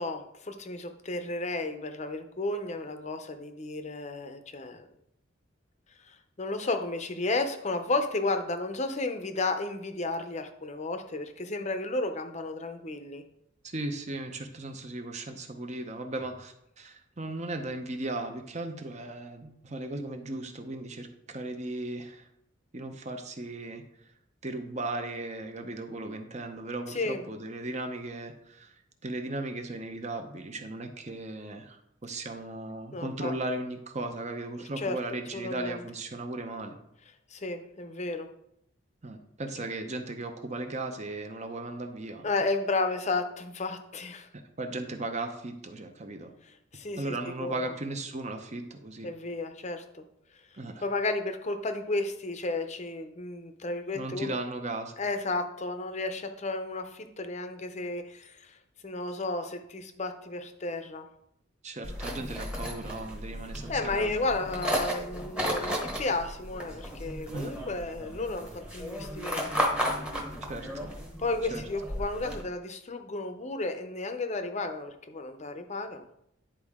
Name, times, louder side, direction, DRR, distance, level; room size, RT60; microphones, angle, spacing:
voice 1, 0.0-4.9 6.1-13.2 26.9-27.2 32.9-33.3 34.8-35.0 35.3-35.8 37.3-38.3 42.2-44.3 46.7-47.7 49.0-50.0 50.8-54.4 55.0-58.6 58.8-61.1 63.7-69.7 71.2-76.1, left 2 dB, 35° left, 7 dB, 0.6 m, -33 dB
voice 2, 13.6-22.3 22.7-23.8 24.4-28.8 29.0-36.7 39.0-42.3 44.3-46.3 47.0-49.1 50.5-50.8 53.9-54.9 61.6-64.3 67.3-67.5 70.5-70.9 71.5-71.7, right 2 dB, 35° right, 6 dB, 0.7 m, -36 dB
sound 1, 61.8-72.4, equal, 5° right, 1.0 m, -34 dB
10.0 x 4.4 x 3.6 m, 0.76 s
head